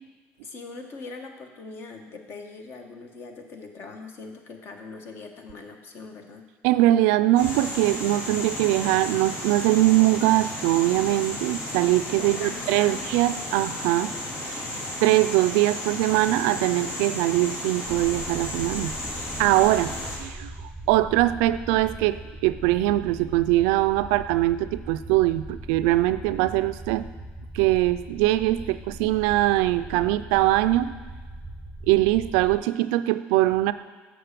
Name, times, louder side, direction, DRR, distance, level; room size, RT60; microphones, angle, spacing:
voice 1, 0.4-6.4 12.2-13.1, left 3 dB, 50° left, 4 dB, 1.3 m, -41 dB
voice 2, 6.6-14.1 14.4-14.6 15.0-18.9 19.3-20.5 20.9-27.1 27.5-30.9 31.9-33.7, right 16 dB, 90° right, 13 dB, 0.4 m, -22 dB
sound 1, 7.4-20.2, left 1 dB, 70° left, 2.3 m, -34 dB
sound 2, 17.8-32.6, right 1 dB, 5° right, 0.8 m, -40 dB
7.7 x 6.3 x 6.8 m, 1.4 s
cardioid pair, 115°, 5 cm